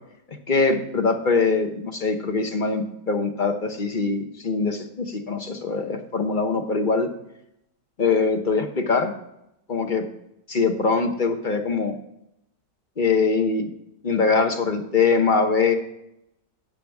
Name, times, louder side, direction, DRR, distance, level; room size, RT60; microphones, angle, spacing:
voice 1, 0.5-7.1 8.0-9.1 9.7-10.1 10.5-12.0 13.0-13.7 14.0-15.7, left 4 dB, 35° left, 6 dB, 0.9 m, -22 dB
11.5 x 8.8 x 3.5 m, 0.80 s
omnidirectional pair, 1.9 m